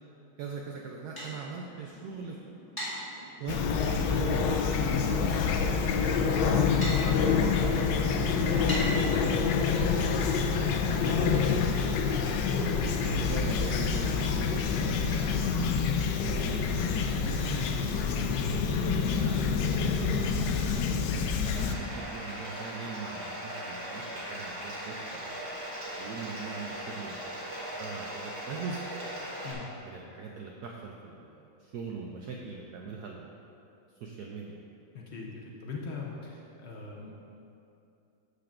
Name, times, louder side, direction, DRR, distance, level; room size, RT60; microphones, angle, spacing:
voice 1, 0.4-2.4 3.4-4.9 5.5-9.4 10.0-11.4 11.7-12.1 12.7-15.9 16.3-20.1 20.9-25.4 26.0-29.0 29.8-33.4 34.0-34.7, right 5 dB, 75° right, 0 dB, 0.9 m, -41 dB
sound 1, 0.6-12.2, equal, 15° left, 1.2 m, -43 dB
Fowl / Chirp tweet, 3.5-21.8, left 5 dB, 75° left, 1.0 m, -27 dB
Bathtub (filling or washing), 21.5-29.5, equal, 40° right, 1.7 m, -39 dB
voice 2, 34.9-37.2, left 4 dB, 90° left, -2 dB, 0.5 m, -40 dB
13.0 x 6.7 x 2.5 m, 2.7 s
omnidirectional pair, 2.3 m